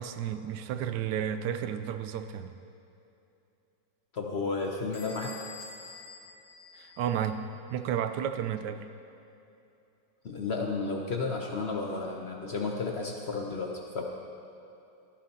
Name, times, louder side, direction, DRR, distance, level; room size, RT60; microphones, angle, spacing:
voice 1, 0.0-2.5 6.7-7.4 7.7-8.9, right 9 dB, 70° right, 9 dB, 1.1 m, -32 dB
voice 2, 4.1-5.3 10.2-14.0, left 4 dB, 65° left, 0 dB, 0.6 m, -32 dB
Bell / Door, 4.9-7.4, left 4 dB, 25° left, 2.9 m, -47 dB
14.5 x 11.5 x 2.8 m, 2.8 s
omnidirectional pair, 2.0 m